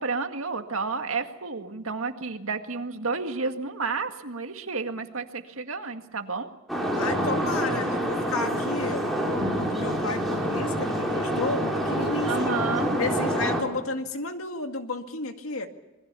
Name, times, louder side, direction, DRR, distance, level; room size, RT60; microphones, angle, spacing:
voice 1, 0.0-6.5 12.2-13.0, right 4 dB, 80° right, 6 dB, 1.9 m, -31 dB
sound 1, 6.7-13.6, equal, ahead, 4.9 m, -27 dB
voice 2, 7.0-12.5 13.0-15.7, left 3 dB, 80° left, 6 dB, 2.1 m, -32 dB
27.5 x 21.5 x 6.9 m, 0.98 s
head